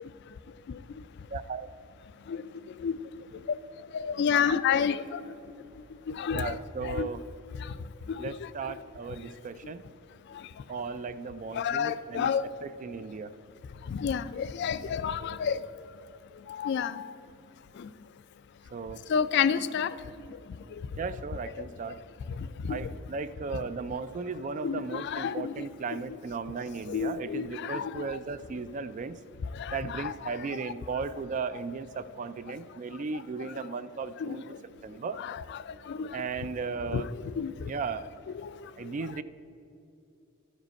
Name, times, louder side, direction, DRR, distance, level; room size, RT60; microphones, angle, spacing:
voice 1, 1.3-1.7 6.3-7.2 8.2-9.8 10.7-12.3 12.6-13.3 15.5-15.6 18.7-19.1 21.0-22.0 22.7-29.2 29.7-34.4 34.8-35.2 36.1-37.1 37.7-38.1 38.8-39.2, right 4 dB, 35° right, 13 dB, 0.3 m, -36 dB
voice 2, 3.9-5.2 6.1-6.6 6.8-7.1 8.2-8.5 11.6-12.4 13.9-15.6 16.5-17.1 17.8-17.9 19.1-19.9 22.4-22.8 24.6-25.6 25.9-26.0 26.9-28.1 29.6-30.3 34.2-34.4 35.2-36.1 36.9-37.5 38.3-38.5, left 7 dB, 55° left, 14 dB, 0.3 m, -30 dB
12.0 x 5.1 x 5.2 m, 2.7 s
head